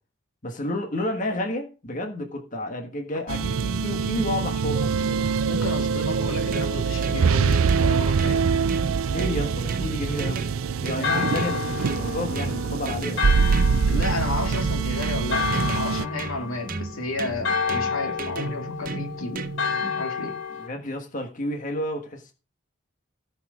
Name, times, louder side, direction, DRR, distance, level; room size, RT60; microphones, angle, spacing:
voice 1, 0.4-5.3 9.1-10.5 10.8-13.4 20.6-22.3, left 1 dB, 40° left, 1.5 m, -31 dB
sound 1, 3.3-16.0, right 5 dB, 85° right, 0.5 m, -24 dB
voice 2, 5.4-8.5 13.9-19.5 19.7-20.4, left 2 dB, 85° left, 2.6 m, -32 dB
sound 2, 6.1-19.8, right 3 dB, 40° right, 0.9 m, -35 dB
Church bell, 11.0-20.7, left 5 dB, 60° left, 1.5 m, -30 dB
17.0 x 6.0 x 5.0 m
head